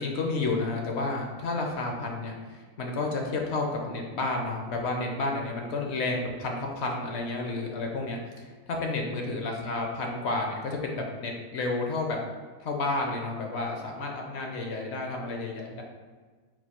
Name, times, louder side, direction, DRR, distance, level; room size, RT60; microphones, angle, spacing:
voice 1, 0.0-12.2 12.6-15.8, left 3 dB, 60° left, 1 dB, 0.8 m, -31 dB
4.3 x 2.3 x 4.2 m, 1.4 s
omnidirectional pair, 1.5 m